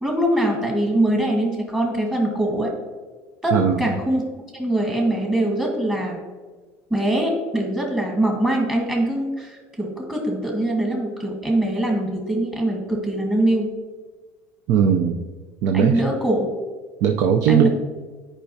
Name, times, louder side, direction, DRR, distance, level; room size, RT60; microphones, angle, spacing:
voice 1, 0.0-2.7 3.4-4.2 4.5-6.2 6.9-13.7 15.7-16.5 17.5-17.7, right 1 dB, 15° right, 0 dB, 1.4 m, -22 dB
voice 2, 3.5-3.8 14.7-15.2 15.6-16.0 17.0-17.7, right 8 dB, 70° right, 5 dB, 0.5 m, -18 dB
10.0 x 4.9 x 2.8 m, 1.3 s
cardioid pair, 120°, 6 cm